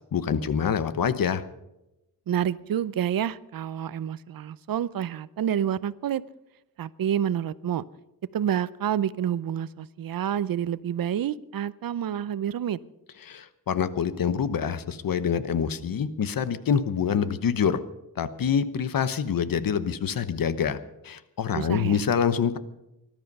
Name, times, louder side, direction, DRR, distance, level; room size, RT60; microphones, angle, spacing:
voice 1, 0.1-1.4 13.2-17.8 18.2-20.8 21.0-22.6, left 7 dB, 70° left, 13 dB, 1.1 m, -26 dB
voice 2, 2.3-6.2 6.8-7.8 8.3-12.8 21.5-22.0, right 10 dB, 70° right, 18 dB, 0.6 m, -28 dB
20.0 x 12.5 x 5.4 m, 0.93 s
wide cardioid pair, 120°, 36 cm